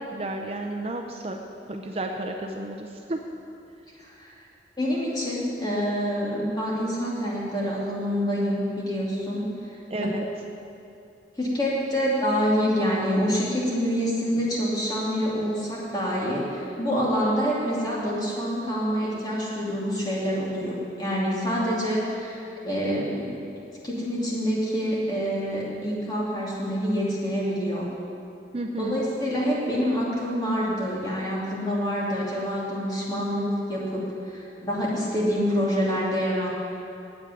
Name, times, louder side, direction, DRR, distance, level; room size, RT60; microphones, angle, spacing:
voice 1, 0.1-1.4 1.7-3.2 9.9-10.2 28.5-29.0, right 1 dB, 35° right, 3 dB, 0.6 m, -31 dB
voice 2, 4.0-4.3 4.8-9.5 11.4-23.4 23.8-27.9 28.8-36.5, equal, 25° left, -5 dB, 2.5 m, -26 dB
8.8 x 8.4 x 9.4 m, 2.7 s
head